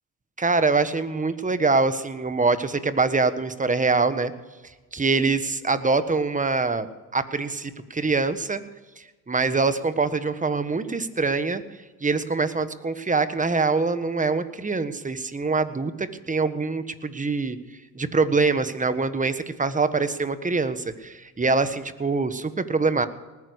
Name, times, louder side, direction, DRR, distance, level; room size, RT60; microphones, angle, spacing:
voice 1, 0.4-4.3 4.9-6.9 7.1-8.6 9.0-11.6 12.0-17.6 17.9-23.1, right 4 dB, 20° right, 11 dB, 1.4 m, -24 dB
19.5 x 9.7 x 6.4 m, 1.2 s
supercardioid pair, 75°, 38 cm